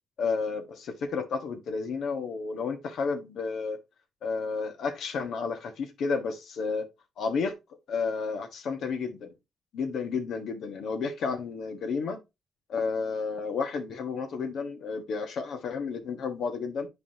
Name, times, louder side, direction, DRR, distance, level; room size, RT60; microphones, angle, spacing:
voice 1, 0.2-3.8 4.2-6.9 7.2-7.6 7.9-9.3 9.7-12.2 12.7-16.9, left 5 dB, 70° left, 1.5 m, -31 dB
9.2 x 4.8 x 2.9 m
cardioid pair, 90°, 0 cm